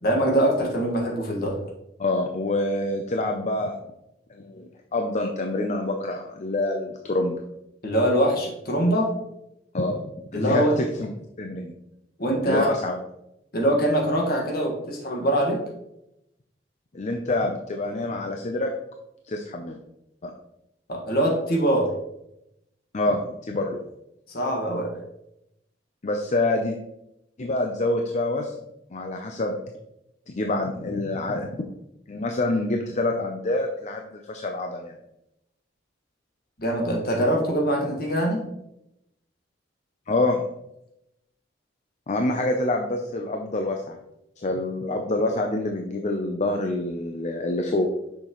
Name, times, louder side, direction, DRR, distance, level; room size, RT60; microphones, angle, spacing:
voice 1, 0.0-1.6 7.8-9.1 10.3-10.8 12.2-12.7 13.5-15.6 20.9-21.9 24.3-24.9 36.6-38.4, right 1 dB, 55° left, 0 dB, 1.6 m, -23 dB
voice 2, 2.0-3.8 4.3-7.4 9.7-10.0 10.3-11.1 11.4-11.7 12.4-13.0 16.9-18.7 19.3-19.8 20.2-20.3 22.9-23.8 26.0-26.8 27.4-28.6 28.9-29.6 30.3-31.5 32.1-35.0 40.1-40.4 42.1-44.0 44.4-47.9, left 2 dB, 40° left, 3 dB, 0.5 m, -26 dB
6.5 x 5.8 x 3.0 m, 0.84 s
head